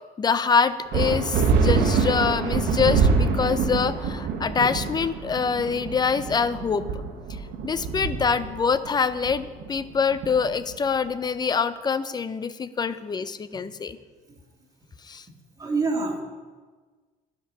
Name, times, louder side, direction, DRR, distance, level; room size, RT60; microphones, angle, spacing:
voice 1, 0.2-7.0 7.6-14.0 15.1-15.2, left 5 dB, 25° left, 14 dB, 0.5 m, -25 dB
sound 1, 0.9-10.9, right 5 dB, 80° right, 1.2 m, -25 dB
voice 2, 15.6-16.2, right 3 dB, 20° right, -1 dB, 2.2 m, -25 dB
11.5 x 5.2 x 6.2 m, 1.4 s
cardioid pair, 110°, 17 cm